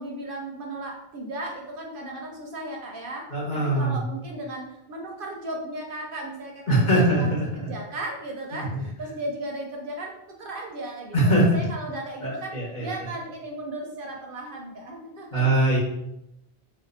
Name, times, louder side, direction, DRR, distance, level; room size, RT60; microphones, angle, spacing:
voice 1, 0.0-15.7, right 1 dB, 60° right, 0 dB, 0.7 m, -36 dB
voice 2, 3.3-4.0 6.7-7.7 8.5-8.8 11.1-11.5 12.2-12.9 15.3-15.8, right 1 dB, 45° left, -5 dB, 1.1 m, -22 dB
2.6 x 2.2 x 3.9 m, 0.85 s
omnidirectional pair, 1.1 m